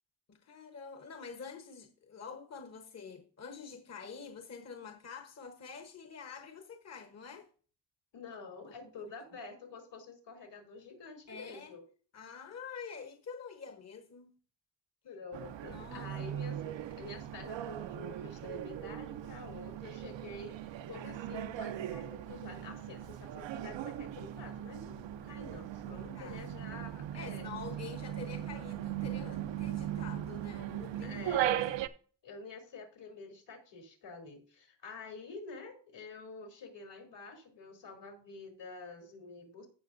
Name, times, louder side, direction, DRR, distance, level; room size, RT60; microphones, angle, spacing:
voice 1, 0.3-7.5 8.8-8.9 11.3-11.8 12.1-14.3 15.7-16.1 25.8-26.5 27.1-31.5, left 5 dB, 35° left, 1.0 m, -47 dB
voice 2, 8.1-11.8 15.0-27.5 31.0-31.8 32.2-39.7, left 4 dB, 70° left, 3.2 m, -48 dB
sound 1, 15.3-31.9, right 11 dB, 85° right, 0.7 m, -38 dB
15.5 x 6.0 x 2.6 m
cardioid pair, 105°, 43 cm